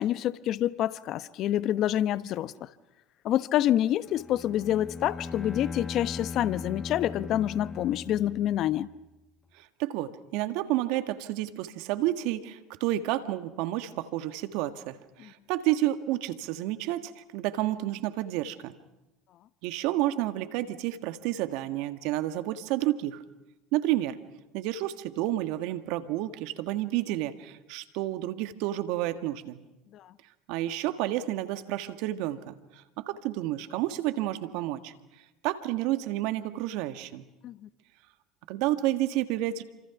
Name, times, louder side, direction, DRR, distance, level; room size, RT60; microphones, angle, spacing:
voice 1, 0.0-2.7 3.2-8.9 15.2-15.3 29.9-30.1 37.4-37.7, left 12 dB, 55° left, 0.9 m, -27 dB
Bowed string instrument, 4.1-8.9, left 4 dB, 20° left, 0.9 m, -39 dB
voice 2, 9.5-18.7 19.6-23.2 23.7-24.2 24.5-29.6 30.5-34.9 35.4-37.2 38.5-39.6, right 14 dB, 70° right, 1.6 m, -30 dB
28.0 x 26.5 x 5.9 m
hypercardioid pair, 80°, 0 cm